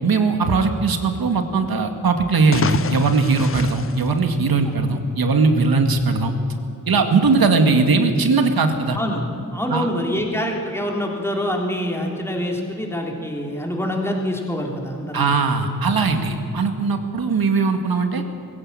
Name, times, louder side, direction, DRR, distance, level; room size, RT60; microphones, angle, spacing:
voice 1, 0.0-6.3 6.9-9.0 9.7-9.9 15.1-18.2, right 4 dB, 75° right, 5 dB, 2.1 m, -19 dB
sound 1, 2.3-4.9, left 6 dB, 35° left, 0.6 m, -29 dB
voice 2, 9.5-15.3, equal, 5° left, 0 dB, 3.5 m, -25 dB
22.0 x 16.0 x 8.9 m, 2.7 s
wide cardioid pair, 125°, 37 cm